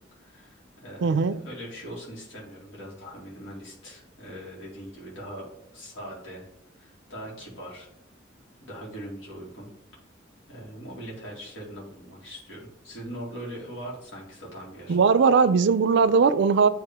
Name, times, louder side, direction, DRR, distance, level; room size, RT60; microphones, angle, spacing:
voice 1, 0.1-5.5 5.7-6.5 6.7-7.9 8.6-9.7 10.5-15.0, equal, 75° left, -5 dB, 2.0 m, -41 dB
voice 2, 1.0-1.4 14.9-16.7, right 5 dB, 65° right, 14 dB, 0.4 m, -19 dB
9.2 x 3.1 x 3.5 m, 0.79 s
head